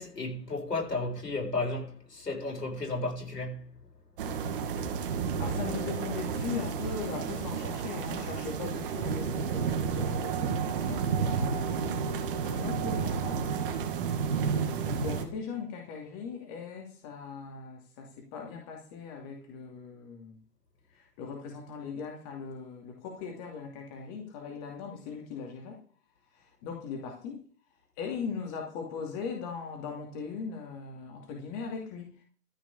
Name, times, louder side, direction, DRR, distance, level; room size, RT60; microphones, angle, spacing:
voice 1, 0.0-3.7, left 2 dB, 80° left, 7.5 m, -33 dB
sound 1, 4.2-15.3, right 6 dB, 35° right, 2.1 m, -31 dB
voice 2, 5.4-13.5 14.3-20.4 20.9-25.8 26.3-27.4 28.0-32.2, left 5 dB, 25° left, 2.6 m, -39 dB
14.0 x 6.0 x 7.2 m
hypercardioid pair, 145°, 48 cm